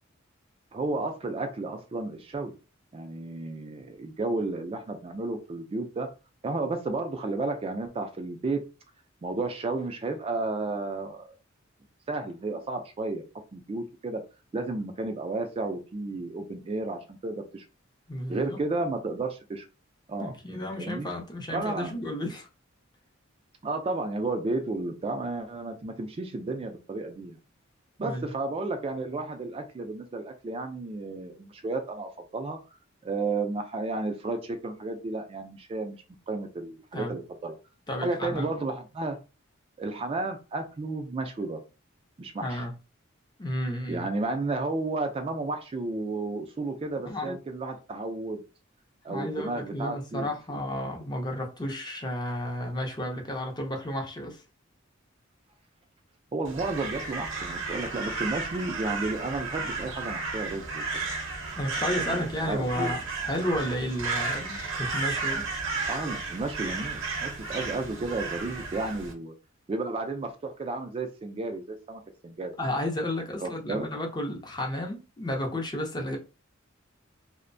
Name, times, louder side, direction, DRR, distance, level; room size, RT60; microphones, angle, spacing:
voice 1, 0.7-2.5 2.9-6.1 6.4-8.6 9.2-11.3 12.1-13.2 13.5-14.2 14.5-17.6 18.3-19.7 20.1-21.1 21.5-21.9 23.6-27.4 28.0-32.6 33.0-36.0 36.3-37.6 38.0-39.2 39.8-41.6 42.2-42.6 43.9-48.4 49.0-50.6 56.3-60.8 61.7-62.9 65.9-69.3 69.7-72.5 73.4-73.9, right 3 dB, 30° right, 0.3 m, -32 dB
voice 2, 18.1-18.6 20.2-22.5 28.0-28.2 36.9-37.2 37.9-38.5 42.4-42.7 43.4-44.1 47.0-47.4 49.1-54.4 61.6-65.4 72.6-76.2, left 1 dB, 20° left, 0.5 m, -32 dB
Crow, 56.4-69.1, right 4 dB, 65° right, 0.7 m, -33 dB
2.5 x 2.1 x 2.5 m
head